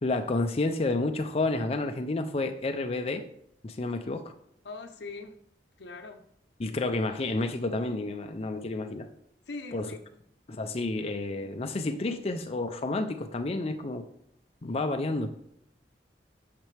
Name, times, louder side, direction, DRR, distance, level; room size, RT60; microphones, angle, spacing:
voice 1, 0.0-3.3 3.6-4.3 6.6-9.1 9.7-9.9 10.5-14.0 14.6-15.3, left 2 dB, 35° left, 6 dB, 0.5 m, -30 dB
voice 2, 4.6-5.4 5.8-6.2 9.5-10.0, left 3 dB, 75° left, 7 dB, 0.8 m, -41 dB
9.2 x 6.6 x 3.3 m, 0.72 s
head